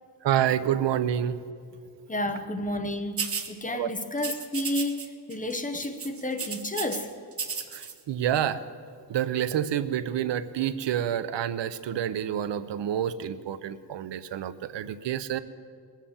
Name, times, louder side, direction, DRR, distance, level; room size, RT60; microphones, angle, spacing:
voice 1, 0.2-1.4 3.7-3.9 7.7-8.6 9.1-15.4, right 10 dB, 75° right, 14 dB, 0.6 m, -28 dB
voice 2, 2.1-7.1, left 1 dB, 20° left, 7 dB, 0.7 m, -31 dB
sound 1, 3.2-3.5 4.2-5.1 5.3-5.5 5.8-7.0 7.3-7.9, right 6 dB, 30° right, 0.8 m, -33 dB
20.5 x 7.4 x 7.2 m, 2.2 s
wide cardioid pair, 170°, 44 cm